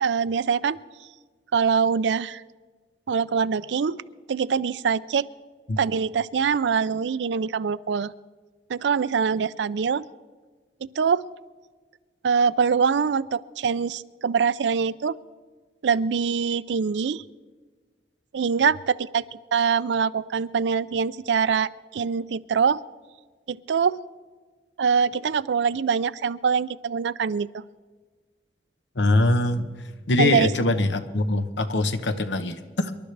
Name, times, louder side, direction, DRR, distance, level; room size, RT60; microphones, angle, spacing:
voice 1, 0.0-0.8 1.5-2.4 3.1-4.0 4.3-5.3 5.8-8.1 8.7-10.1 10.8-11.3 12.2-15.2 15.8-17.2 18.3-19.2 19.5-22.8 23.5-24.0 24.8-27.6 30.2-30.5, right 6 dB, 85° right, 18 dB, 0.4 m, -24 dB
voice 2, 29.0-29.7 30.1-32.9, left 2 dB, 90° left, 9 dB, 1.0 m, -23 dB
25.5 x 12.0 x 3.3 m, 1.4 s
head